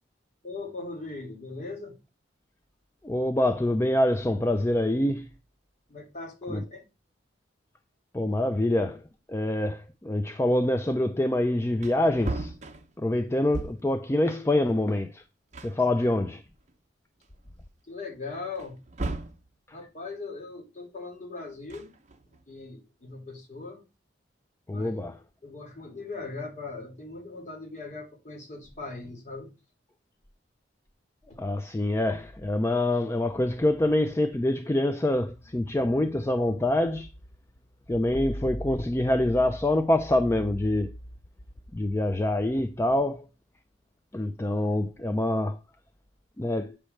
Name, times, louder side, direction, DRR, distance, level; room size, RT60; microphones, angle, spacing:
voice 1, 0.4-2.0 5.9-6.8 17.9-18.8 19.7-21.9 22.5-23.8 24.7-25.0 25.4-29.5 31.3-31.4, left 3 dB, 40° left, 2.1 m, -39 dB
voice 2, 3.0-5.3 6.5-6.6 8.1-9.0 9.3-12.5 13.0-15.2 15.6-16.4 24.7-25.2 31.4-37.1 37.9-41.0 41.7-43.3 44.1-45.6 46.4-46.8, left 1 dB, 15° left, 0.4 m, -25 dB
Wood, 11.3-11.4 11.7-14.0 15.1-15.2 15.5-16.7 17.2-17.3 18.6-19.5 21.5-22.4, right 2 dB, 35° right, 0.7 m, -37 dB
8.8 x 3.1 x 6.4 m
head